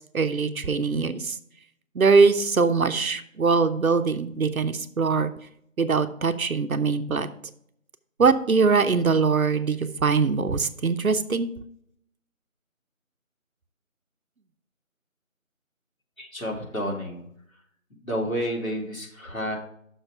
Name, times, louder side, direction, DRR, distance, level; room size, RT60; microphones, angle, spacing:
voice 1, 0.1-1.4 1.9-5.3 5.8-7.3 8.2-11.5, right 4 dB, 90° right, 10 dB, 0.8 m, -22 dB
voice 2, 16.2-17.3 18.0-19.6, equal, 80° left, -1 dB, 2.7 m, -30 dB
6.4 x 4.6 x 5.7 m, 0.69 s
figure-of-eight pair, 175°, 41 cm